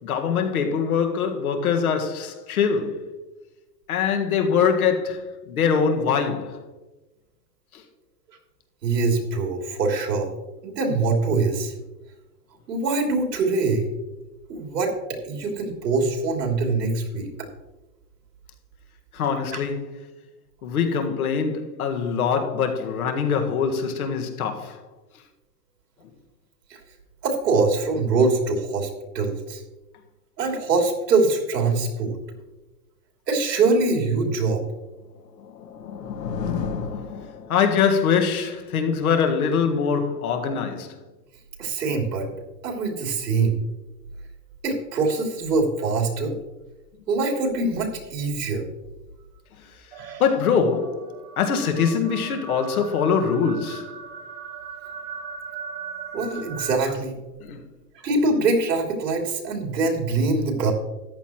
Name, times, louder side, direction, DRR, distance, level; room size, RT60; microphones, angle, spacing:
voice 1, 0.0-3.1 3.9-6.6 7.7-7.8 19.1-20.0 20.6-24.8 37.5-40.9 50.2-51.1 51.4-53.9 57.4-57.6, left 6 dB, 60° left, 1.8 m, -23 dB
voice 2, 8.8-10.3 10.6-11.7 12.7-13.9 14.5-17.3 19.5-19.6 26.7-26.8 27.2-28.9 29.1-29.6 30.4-32.2 33.3-34.6 41.6-42.3 42.6-43.6 44.6-46.3 47.1-48.6 50.0-50.2 56.1-57.1 58.0-60.7, right 3 dB, 75° right, 3.1 m, -23 dB
sound 1, 35.1-38.0, left 6 dB, 80° left, 1.6 m, -32 dB
sound 2, 49.9-56.8, right 6 dB, 35° right, 1.5 m, -38 dB
14.0 x 10.5 x 3.0 m
supercardioid pair, 175°, 49 cm